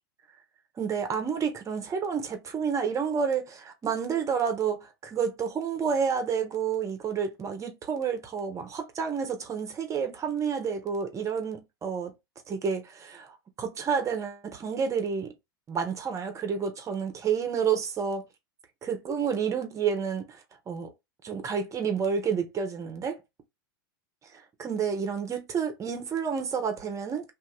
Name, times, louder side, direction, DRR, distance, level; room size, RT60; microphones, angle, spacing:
voice 1, 0.8-12.1 12.5-15.3 15.7-18.3 18.8-20.4 20.7-20.9 21.2-23.2 24.3-27.3, right 6 dB, 25° right, 1.1 m, -30 dB
2.8 x 2.8 x 3.8 m
hypercardioid pair, 100°, 12 cm